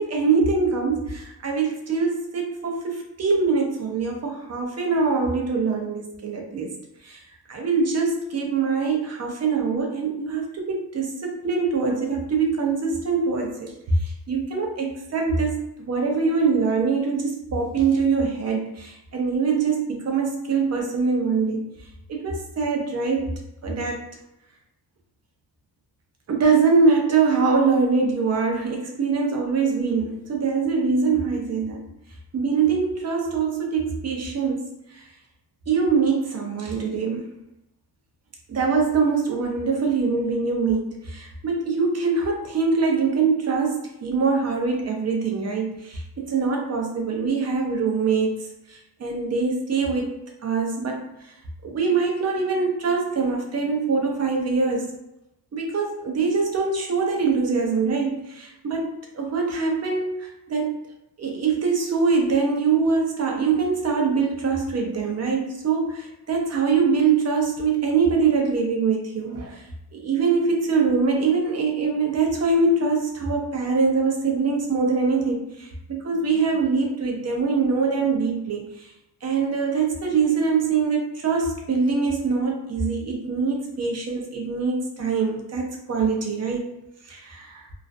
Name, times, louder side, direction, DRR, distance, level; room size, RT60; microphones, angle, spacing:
voice 1, 0.0-6.7 7.0-7.2 7.5-15.6 15.9-21.7 22.1-23.3 23.6-24.1 26.3-31.8 32.3-35.1 35.7-37.3 38.5-50.2 50.4-51.3 51.6-54.9 55.5-60.8 61.2-78.9 79.2-86.7 87.0-87.7, right 4 dB, 40° right, 1 dB, 0.5 m, -23 dB
2.4 x 2.1 x 2.5 m, 0.86 s
wide cardioid pair, 135°, 41 cm